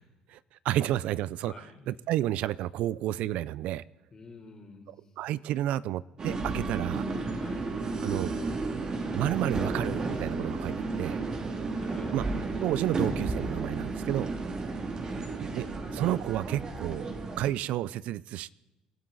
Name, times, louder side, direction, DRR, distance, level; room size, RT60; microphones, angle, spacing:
voice 1, 0.6-1.5 1.9-3.8 5.2-7.0 8.0-8.3 9.1-11.2 12.1-12.2 12.6-14.3 15.4-15.7 15.9-17.1 17.4-18.5, right 13 dB, 70° right, 20 dB, 0.4 m, -30 dB
voice 2, 1.4-1.9 4.1-4.9 7.3-7.6 11.7-12.2 15.0-15.3, left 4 dB, 30° left, 3 dB, 3.8 m, -49 dB
sound 1, 6.2-17.5, right 3 dB, 35° right, 2.5 m, -33 dB
28.0 x 12.5 x 4.0 m, 1.0 s
cardioid pair, 120°, 2 cm